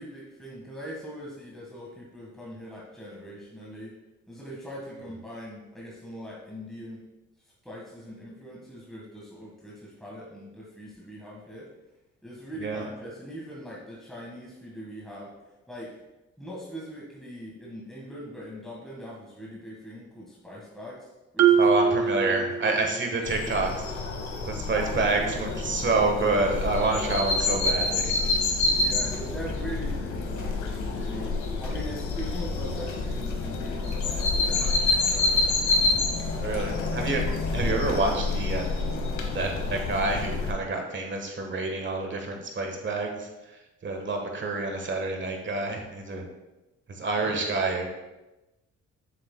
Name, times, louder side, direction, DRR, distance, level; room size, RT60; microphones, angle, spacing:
voice 1, 0.0-3.9 4.3-7.0 7.6-11.7 12.2-15.3 15.7-15.9 16.4-21.8 22.1-23.0 23.3-23.4 24.7-25.6 28.7-35.5 47.2-47.4, equal, ahead, -5 dB, 1.7 m, -41 dB
Marimba xylophone, 21.4-23.1, right 6 dB, 60° right, 0.6 m, -23 dB
voice 2, 21.6-23.7 24.5-28.1 36.4-37.2 37.5-38.8 39.3-46.2 46.9-47.9, right 3 dB, 40° right, 3 dB, 1.4 m, -28 dB
sound 1, 23.2-40.5, left 3 dB, 75° left, 1.2 m, -28 dB
7.2 x 6.9 x 2.3 m, 1.0 s
cardioid pair, 90°, 30 cm